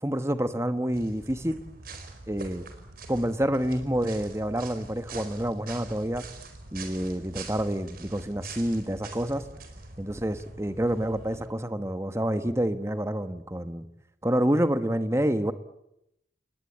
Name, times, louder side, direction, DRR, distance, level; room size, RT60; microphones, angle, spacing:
voice 1, 0.0-1.6 2.3-2.7 3.1-6.2 6.7-9.4 10.0-13.9 14.2-15.5, right 1 dB, 15° right, 10 dB, 1.2 m, -28 dB
sound 1, 0.9-11.5, right 3 dB, 50° right, 4.6 m, -44 dB
28.5 x 20.5 x 8.7 m, 0.84 s
head